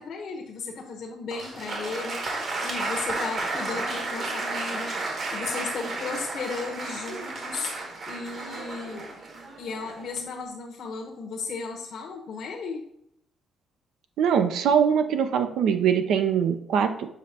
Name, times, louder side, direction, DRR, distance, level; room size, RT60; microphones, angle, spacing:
voice 1, 0.0-9.1 9.6-12.9, left 4 dB, 70° left, -1 dB, 1.0 m, -35 dB
Applause, 1.3-10.2, right 2 dB, 60° right, 1.9 m, -32 dB
voice 2, 14.2-17.1, right 7 dB, 80° right, 8 dB, 0.6 m, -22 dB
7.3 x 5.1 x 2.8 m, 0.76 s
cardioid pair, 90°, 0 cm